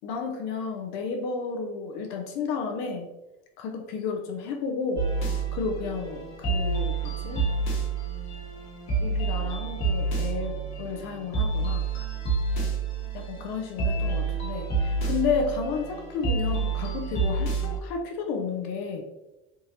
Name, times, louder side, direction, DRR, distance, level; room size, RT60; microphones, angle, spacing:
voice 1, 0.0-3.1 3.6-5.1 5.5-7.5 9.0-11.9 13.1-19.0, left 5 dB, 80° left, 2 dB, 0.5 m, -32 dB
sound 1, 5.0-17.8, right 4 dB, 60° left, 1.2 m, -28 dB
3.6 x 2.6 x 2.8 m, 1.0 s
supercardioid pair, 80°, 30 cm